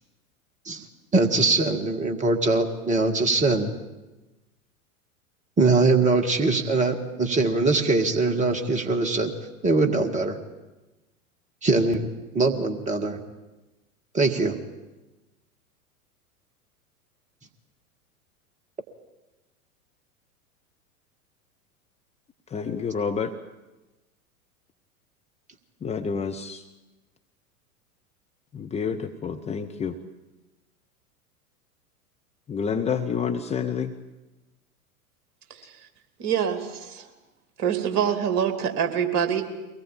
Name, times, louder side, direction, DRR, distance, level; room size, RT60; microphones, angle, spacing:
voice 1, 1.1-3.7 5.6-9.3 9.6-10.4 11.6-12.1 12.3-13.2 14.1-14.6, right 3 dB, 15° right, 6 dB, 1.8 m, -22 dB
voice 2, 22.5-23.3 25.8-26.6 28.5-29.9 32.5-33.9, left 6 dB, 15° left, 5 dB, 0.8 m, -28 dB
voice 3, 36.2-37.1 37.6-39.4, right 8 dB, 40° right, 6 dB, 2.9 m, -25 dB
23.5 x 19.0 x 8.7 m, 1.1 s
figure-of-eight pair, 90°, 44 cm